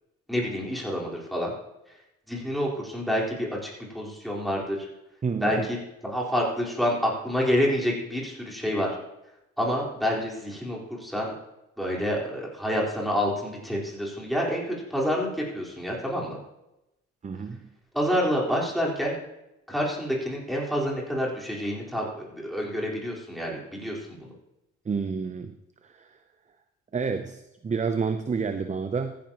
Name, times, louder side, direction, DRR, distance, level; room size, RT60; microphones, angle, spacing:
voice 1, 0.3-1.5 2.3-3.7 3.9-4.9 5.4-5.8 6.0-8.9 9.6-11.3 11.8-16.4 17.9-19.1 19.7-24.3, equal, ahead, -4 dB, 4.1 m, -28 dB
voice 2, 5.2-5.7 17.2-17.6 24.9-25.5 25.8-26.2 26.9-29.2, right 5 dB, 25° right, 9 dB, 0.6 m, -29 dB
15.0 x 10.5 x 3.0 m, 0.91 s
cardioid pair, 90°, 30 cm